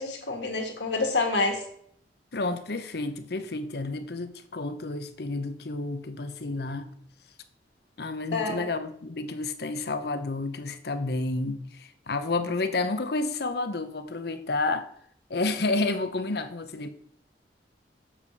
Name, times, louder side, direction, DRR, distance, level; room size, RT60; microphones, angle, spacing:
voice 1, 0.0-1.6 8.3-8.7, left 3 dB, 80° left, 1.8 m, -27 dB
voice 2, 2.3-6.9 8.0-14.9 15.3-16.9, left 3 dB, 65° left, 0.8 m, -30 dB
7.2 x 7.1 x 4.9 m
head